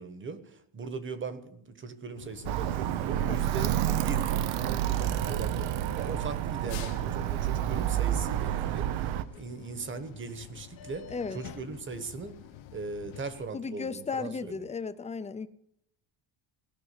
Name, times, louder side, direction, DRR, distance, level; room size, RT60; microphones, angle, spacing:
voice 1, 0.0-3.7 4.0-12.4 12.7-14.7, right 4 dB, 25° right, 1.2 m, -39 dB
sound 1, 2.2-13.5, left 11 dB, 75° left, 1.2 m, -47 dB
Alarm, 2.4-9.2, right 12 dB, 85° right, 0.9 m, -29 dB
voice 2, 11.1-11.4 13.5-15.5, left 5 dB, 15° left, 0.5 m, -35 dB
17.5 x 6.1 x 9.6 m
cardioid pair, 155°, 46 cm